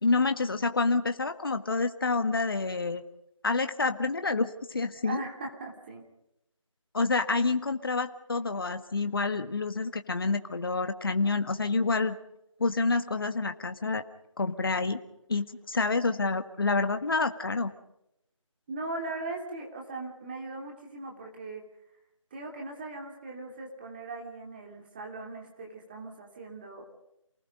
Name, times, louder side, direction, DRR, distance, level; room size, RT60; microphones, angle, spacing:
voice 1, 0.0-3.0 3.4-5.2 6.9-12.1 12.6-14.0 14.4-15.0 15.3-17.7, left 3 dB, 45° left, 8 dB, 1.6 m, -28 dB
voice 2, 5.0-6.1 18.7-21.7 22.3-26.8, right 2 dB, 20° right, 0 dB, 3.1 m, -39 dB
28.5 x 19.5 x 5.2 m, 0.82 s
figure-of-eight pair, 170°, 17 cm